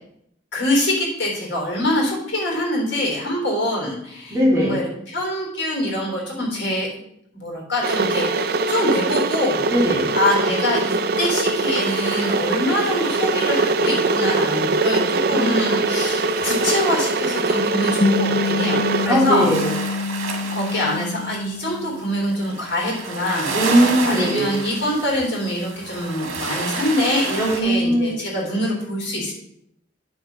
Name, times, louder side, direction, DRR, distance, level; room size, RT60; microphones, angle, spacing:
voice 1, 0.5-6.9 7.3-9.6 10.1-19.5 20.5-23.5 24.0-29.3, left 1 dB, 55° left, -2 dB, 3.6 m, -24 dB
voice 2, 4.3-4.8 9.7-10.1 15.3-15.8 19.0-19.7 23.5-24.5 27.4-28.1, equal, 15° right, -5 dB, 2.7 m, -19 dB
Water / Boiling, 7.8-19.1, right 3 dB, 50° right, 0.5 m, -22 dB
sound 1, 11.5-27.6, right 3 dB, 80° right, 1.9 m, -32 dB
sound 2, 18.0-22.7, left 3 dB, 40° left, 0.7 m, -26 dB
9.2 x 6.4 x 5.2 m, 0.74 s
head